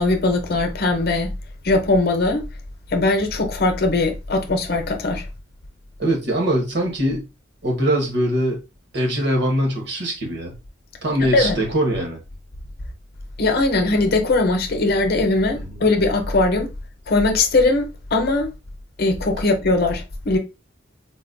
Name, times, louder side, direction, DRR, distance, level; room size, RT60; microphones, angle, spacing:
voice 1, 0.0-1.3 1.6-2.5 2.9-5.3 11.3-11.5 13.4-16.7 17.1-18.5 19.0-20.4, left 2 dB, 55° left, 0.7 m, -20 dB
voice 2, 6.0-7.2 7.6-8.6 8.9-10.5 11.0-12.2 15.5-15.8, right 1 dB, 60° right, 1.2 m, -22 dB
4.0 x 2.2 x 2.5 m
head